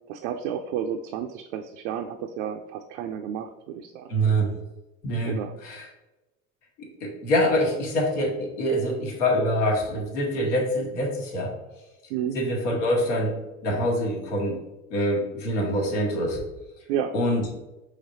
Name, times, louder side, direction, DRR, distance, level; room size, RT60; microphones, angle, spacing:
voice 1, 0.1-4.1 5.2-5.6 12.1-12.4 16.9-17.1, right 9 dB, 70° right, 4 dB, 0.5 m, -31 dB
voice 2, 4.1-4.5 5.0-5.4 5.6-5.9 6.8-11.5 12.3-14.6 14.9-16.4 17.1-17.4, equal, 80° left, 0 dB, 1.3 m, -25 dB
5.1 x 3.3 x 2.6 m, 1.0 s
hypercardioid pair, 85°, 37 cm